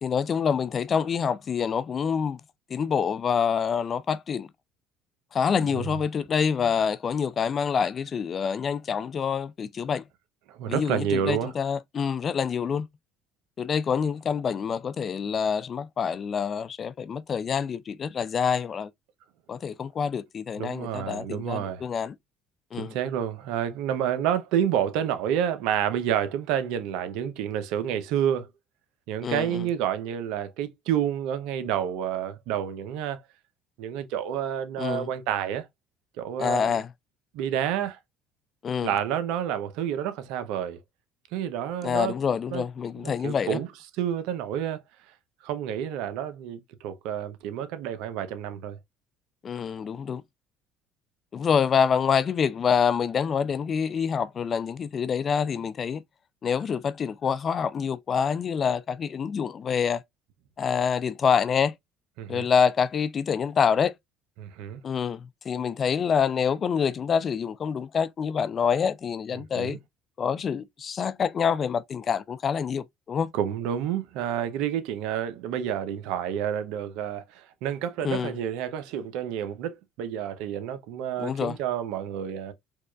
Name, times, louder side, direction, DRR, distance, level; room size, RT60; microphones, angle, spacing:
voice 1, 0.0-2.4 2.7-4.5 5.3-10.0 10.7-12.9 13.6-18.9 19.5-22.1 22.7-22.9 29.2-29.6 34.8-35.1 36.4-36.9 38.6-38.9 41.8-43.6 49.4-50.2 51.3-56.0 56.4-60.0 60.6-61.7 62.3-63.9 64.8-69.8 70.2-73.3 78.0-78.3 81.2-81.6, left 7 dB, 45° left, 0.3 m, -26 dB
voice 2, 10.5-11.5 20.6-21.8 22.8-28.5 29.1-33.2 33.8-35.7 36.2-36.8 37.3-38.0 38.8-40.8 41.3-42.1 42.5-42.6 43.0-43.7 44.0-44.8 45.4-48.8 62.2-62.5 64.4-64.8 69.5-69.8 73.3-82.5, right 9 dB, 75° right, 0.6 m, -29 dB
4.6 x 2.4 x 2.2 m
supercardioid pair, 80°, 0 cm